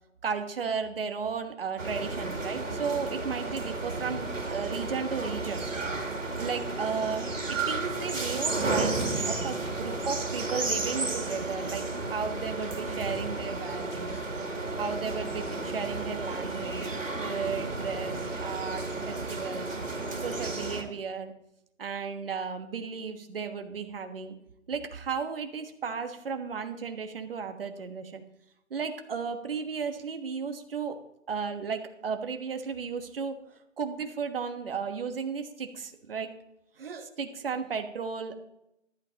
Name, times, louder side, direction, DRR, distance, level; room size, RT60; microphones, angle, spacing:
voice 1, 0.2-5.6 6.4-14.2 14.8-19.7 20.2-21.3 21.8-24.3 24.7-28.2 28.7-31.0 31.3-33.3 33.8-36.3 36.8-38.4, right 5 dB, 50° right, 6 dB, 1.4 m, -34 dB
sound 1, 1.8-20.8, right 3 dB, 85° right, 2.6 m, -33 dB
15.0 x 11.5 x 2.9 m, 0.81 s
figure-of-eight pair, 150°, 38 cm